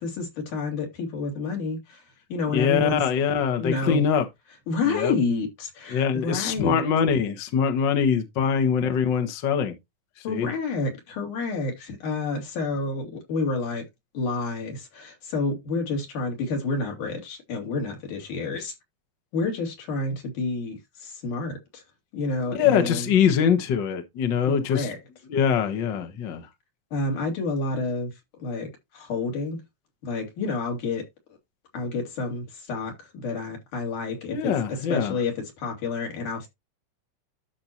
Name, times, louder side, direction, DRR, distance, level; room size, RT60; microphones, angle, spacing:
voice 1, 0.0-2.0 2.3-3.0 3.6-4.0 4.7-6.8 10.2-13.8 14.1-18.7 19.3-21.8 22.1-23.1 24.5-25.0 26.9-28.1 28.4-29.6 30.0-31.0 31.7-36.5, left 3 dB, 80° left, 4.2 m, -29 dB
voice 2, 2.5-4.3 4.9-5.1 5.9-9.7 10.2-10.5 22.5-24.9 25.3-26.5 34.3-35.1, left 7 dB, 45° left, 1.6 m, -23 dB
12.5 x 5.8 x 2.9 m
omnidirectional pair, 3.5 m